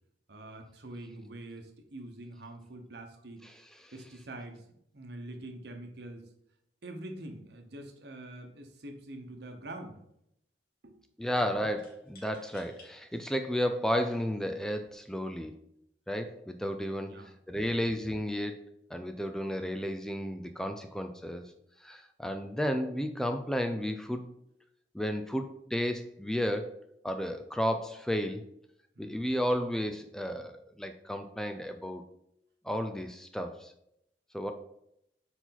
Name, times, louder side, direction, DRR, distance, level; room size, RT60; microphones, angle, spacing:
voice 1, 0.3-3.4 3.9-4.6 4.9-6.2 6.8-10.0 10.8-11.0 17.1-17.6 28.9-29.2, right 1 dB, 65° right, 3 dB, 1.0 m, -45 dB
voice 2, 3.4-3.9 11.2-15.5 16.1-18.6 18.9-21.5 21.8-24.3 24.9-26.7 27.0-28.4 29.0-32.0 32.6-33.7 34.3-34.5, equal, 5° left, 6 dB, 0.3 m, -33 dB
sound 1, 8.7-8.9 9.2-9.9 11.8-12.9 13.6-13.7 14.6-14.9, left 3 dB, 55° left, 1.6 m, -58 dB
4.6 x 4.1 x 5.7 m, 0.77 s
head